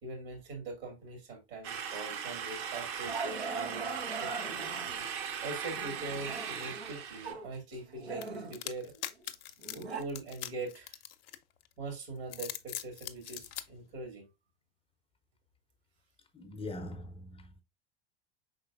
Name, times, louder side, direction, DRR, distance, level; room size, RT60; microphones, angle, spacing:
voice 1, 0.0-4.7 5.4-8.9 9.7-11.0 11.8-14.3, right 2 dB, 65° right, 2.2 m, -42 dB
sound 1, 1.6-7.3, right 7 dB, 45° right, 0.8 m, -39 dB
Growling, 2.1-2.3 3.0-5.1 5.7-7.5 7.7-10.0, right 4 dB, 90° right, 0.7 m, -41 dB
sound 2, 8.2-11.7 12.2-13.7, left 12 dB, 70° left, 0.5 m, -41 dB
voice 2, 16.3-17.6, left 2 dB, 20° left, 0.5 m, -42 dB
5.0 x 3.9 x 2.3 m
figure-of-eight pair, 80°, 31 cm